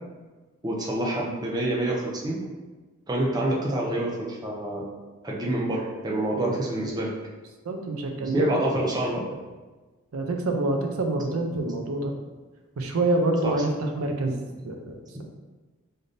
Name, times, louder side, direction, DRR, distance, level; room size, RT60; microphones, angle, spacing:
voice 1, 0.6-2.4 3.1-4.8 5.2-7.1 8.2-9.2 13.4-13.7, right 1 dB, 20° right, -3 dB, 0.4 m, -27 dB
voice 2, 7.6-8.8 10.1-12.1 12.8-14.4 14.6-15.2, right 2 dB, 85° right, 3 dB, 0.5 m, -27 dB
3.5 x 2.5 x 2.5 m, 1.3 s
head